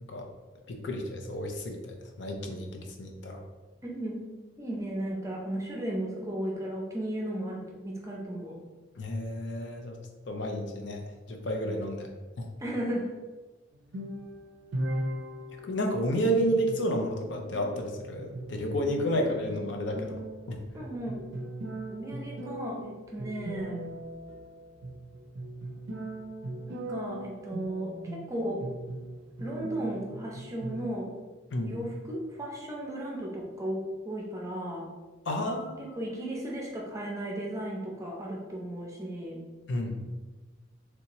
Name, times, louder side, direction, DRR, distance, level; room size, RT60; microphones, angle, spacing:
voice 1, 0.7-3.4 9.0-10.0 10.3-11.0 11.3-12.1 12.4-12.5 15.6-20.2 20.5-20.6 31.5-31.8 35.3-36.0 39.7-40.0, equal, 65° left, 3 dB, 0.5 m, -31 dB
voice 2, 3.8-4.2 4.6-8.6 12.6-13.1 20.7-21.2 21.9-23.8 26.7-28.7 29.4-31.1 31.6-34.9 35.8-39.4, right 1 dB, 15° right, -2 dB, 0.5 m, -35 dB
sound 1, 13.7-30.9, right 1 dB, 70° right, 0.4 m, -39 dB
3.3 x 2.8 x 2.9 m, 1.2 s
head